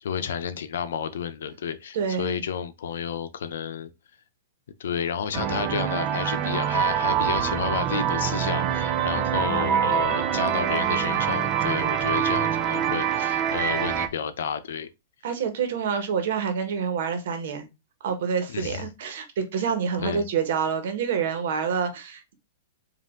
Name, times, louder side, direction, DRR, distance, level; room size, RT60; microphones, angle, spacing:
voice 1, 0.0-3.9 4.8-14.9 18.5-18.8 20.0-20.2, left 7 dB, 80° left, 0.7 m, -31 dB
voice 2, 1.9-2.4 15.2-17.7 18.0-22.3, right 6 dB, 60° right, 1.2 m, -27 dB
sound 1, 5.3-14.1, right 9 dB, 25° right, 0.5 m, -25 dB
5.0 x 2.7 x 3.7 m
supercardioid pair, 165°, 0 cm